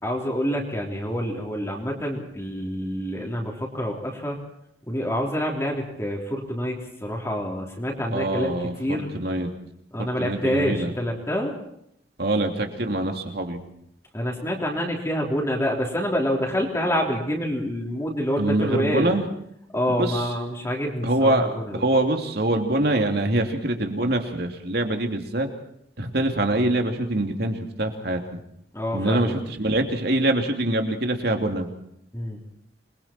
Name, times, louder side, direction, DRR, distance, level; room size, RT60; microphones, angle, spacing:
voice 1, 0.0-4.4 4.9-8.5 8.8-9.1 9.9-11.5 14.1-19.2 19.7-21.8 28.7-29.4 32.1-32.4, equal, 15° left, -1 dB, 3.4 m, -27 dB
voice 2, 8.1-9.5 10.0-10.9 12.2-13.6 18.4-19.3 19.9-20.3 21.0-25.5 26.0-28.2 28.9-31.7, right 1 dB, 60° right, 4 dB, 2.9 m, -24 dB
27.0 x 22.0 x 4.5 m, 0.72 s
head